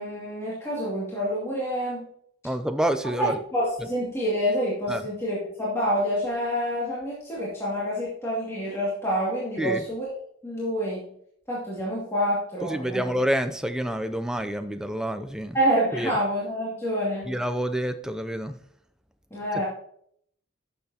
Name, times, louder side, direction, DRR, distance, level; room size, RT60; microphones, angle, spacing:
voice 1, 0.0-2.0 3.2-10.1 10.4-11.1 11.5-13.0 15.5-17.3 19.3-19.7, equal, 15° left, -7 dB, 2.3 m, -27 dB
voice 2, 2.4-3.4 4.9-5.0 9.6-9.8 12.6-15.6 15.9-16.1 17.3-18.6, right 1 dB, 5° right, 8 dB, 0.4 m, -28 dB
12.0 x 6.9 x 2.9 m, 0.66 s
head